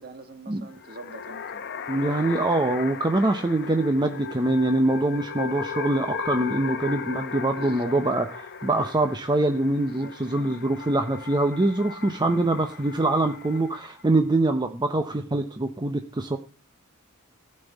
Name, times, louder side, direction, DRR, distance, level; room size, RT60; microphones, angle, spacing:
voice 1, 0.0-1.6 7.6-8.0 9.8-10.6, right 2 dB, 50° right, 1.8 m, -45 dB
sound 1, 0.7-14.1, left 6 dB, 55° left, 0.9 m, -37 dB
voice 2, 1.9-16.4, right 2 dB, 20° right, 0.7 m, -24 dB
15.0 x 5.5 x 8.1 m
head